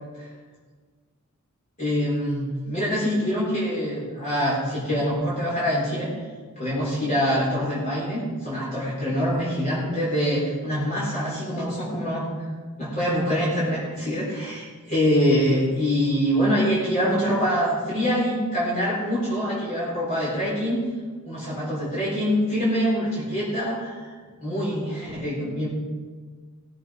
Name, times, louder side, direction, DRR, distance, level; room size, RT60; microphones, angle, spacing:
voice 1, 1.8-6.1 6.6-12.3 12.8-20.8 21.3-24.0 24.4-25.7, equal, 35° left, -8 dB, 4.3 m, -24 dB
18.5 x 8.7 x 5.1 m, 1.5 s
head